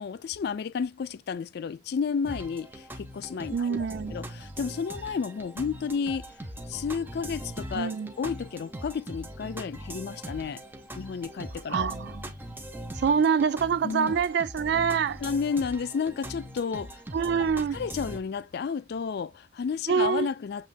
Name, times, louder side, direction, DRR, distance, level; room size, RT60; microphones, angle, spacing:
voice 1, 0.0-6.3 6.7-7.9 8.2-10.6 11.0-11.9 13.8-14.1 15.2-17.0 17.4-17.5 17.7-20.7, left 6 dB, 55° left, 0.3 m, -32 dB
sound 1, 2.2-18.2, right 1 dB, 10° right, 0.6 m, -41 dB
voice 2, 3.5-4.2 7.7-8.1 11.7-12.3 13.0-15.2 17.1-17.8 19.9-20.3, right 6 dB, 60° right, 0.3 m, -25 dB
7.2 x 3.1 x 2.3 m
head